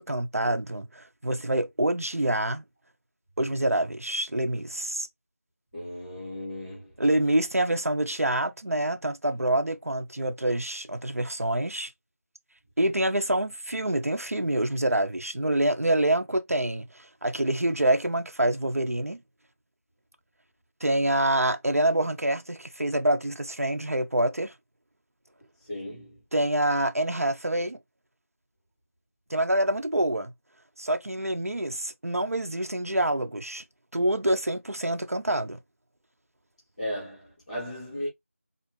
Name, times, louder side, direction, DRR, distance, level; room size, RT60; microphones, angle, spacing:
voice 1, 0.0-2.6 3.4-5.1 7.0-11.9 12.8-19.2 20.8-24.5 26.3-27.8 29.3-30.3 30.8-33.6 33.9-35.6, right 1 dB, 70° right, 0.8 m, -26 dB
voice 2, 5.7-6.9 25.6-26.2 36.8-38.1, left 1 dB, 5° right, 1.1 m, -36 dB
4.0 x 2.6 x 3.1 m
figure-of-eight pair, 170°, 8 cm